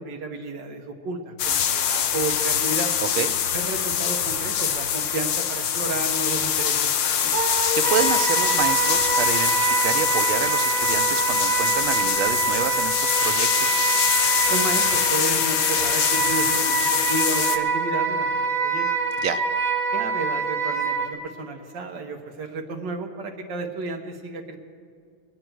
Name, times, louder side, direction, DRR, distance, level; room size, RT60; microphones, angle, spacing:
voice 1, 0.0-2.9 3.5-7.3 14.5-18.9 19.9-24.6, right 2 dB, 60° right, 3 dB, 1.7 m, -32 dB
sound 1, 1.4-17.6, left 8 dB, 80° left, 1.7 m, -24 dB
voice 2, 3.0-3.3 7.5-13.8 19.2-19.4, right 10 dB, 85° right, 9 dB, 1.5 m, -28 dB
Wind instrument woodwind instrument, 7.3-21.1, right 5 dB, 40° right, 2.1 m, -25 dB
22.5 x 10.5 x 4.6 m, 2.2 s
omnidirectional pair, 2.3 m